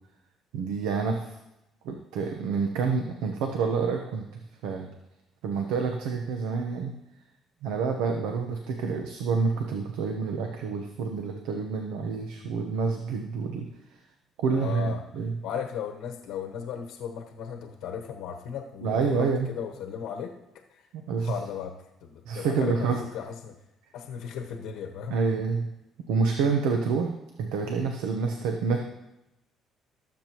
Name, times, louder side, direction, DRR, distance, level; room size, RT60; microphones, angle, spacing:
voice 1, 0.5-1.4 1.8-4.9 5.4-6.9 7.6-13.7 14.4-15.3 18.8-19.5 20.9-21.3 22.3-23.0 25.1-25.7 26.1-28.8, right 5 dB, 90° right, 3 dB, 0.9 m, -28 dB
voice 2, 14.5-15.0 15.4-20.3 20.7-20.9 21.2-23.6 23.9-25.2, left 8 dB, 85° left, 3 dB, 1.1 m, -36 dB
19.0 x 7.5 x 3.0 m, 0.92 s
cardioid pair, 95°, 0 cm